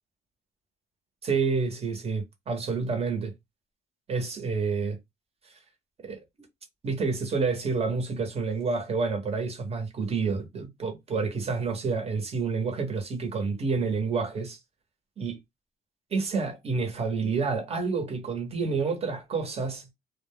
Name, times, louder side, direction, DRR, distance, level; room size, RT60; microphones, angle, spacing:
voice 1, 1.2-3.3 4.1-5.0 6.0-6.2 6.8-14.6 15.2-15.4 16.1-19.9, right 4 dB, 35° right, 1.1 m, -29 dB
2.3 x 2.2 x 3.5 m
cardioid pair, 110°, 17 cm